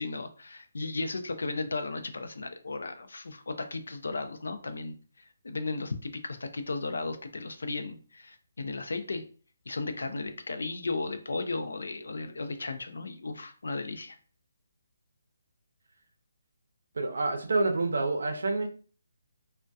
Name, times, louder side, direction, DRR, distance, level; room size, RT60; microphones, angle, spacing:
voice 1, 0.0-4.9 5.4-9.2 9.7-14.2, left 3 dB, 80° left, 0.4 m, -35 dB
voice 2, 17.0-18.7, right 3 dB, 65° right, 0.5 m, -28 dB
2.6 x 2.1 x 2.3 m
hypercardioid pair, 180°, 0 cm